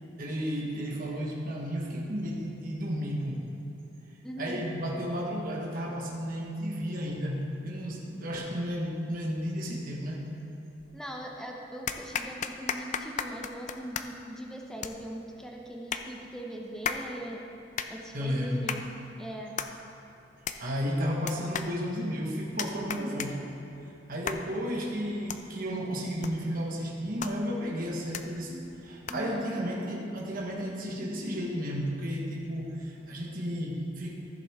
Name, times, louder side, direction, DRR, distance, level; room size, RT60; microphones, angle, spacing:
voice 1, 0.2-3.4 4.4-10.2 18.1-18.7 20.6-23.4 24.1-34.1, equal, 50° right, -3 dB, 1.3 m, -33 dB
voice 2, 4.2-4.6 10.9-17.4 17.9-18.8 19.2-19.5 29.1-29.5, right 1 dB, 5° left, 0 dB, 0.8 m, -40 dB
sound 1, 10.8-11.3 11.9-29.4, left 7 dB, 40° left, 0.4 m, -39 dB
14.5 x 6.8 x 3.6 m, 2.9 s
head